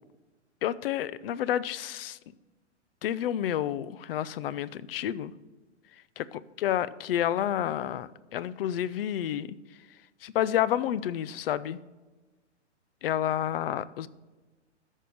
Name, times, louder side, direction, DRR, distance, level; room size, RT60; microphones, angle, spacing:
voice 1, 0.6-2.2 3.0-5.3 6.2-9.6 10.2-11.8 13.0-14.1, left 11 dB, 50° left, 0.5 m, -30 dB
13.5 x 5.5 x 6.4 m
hypercardioid pair, 115°, 36 cm